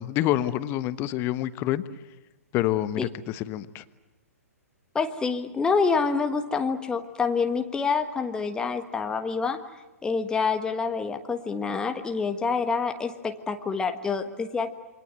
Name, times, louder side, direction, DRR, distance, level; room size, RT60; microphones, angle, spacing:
voice 1, 0.0-1.8 2.5-3.8, left 13 dB, 25° left, 14 dB, 1.1 m, -27 dB
voice 2, 4.9-9.6 10.0-14.7, left 5 dB, 10° left, 7 dB, 1.4 m, -27 dB
28.5 x 24.5 x 8.1 m, 1.1 s
figure-of-eight pair, 115°, 8 cm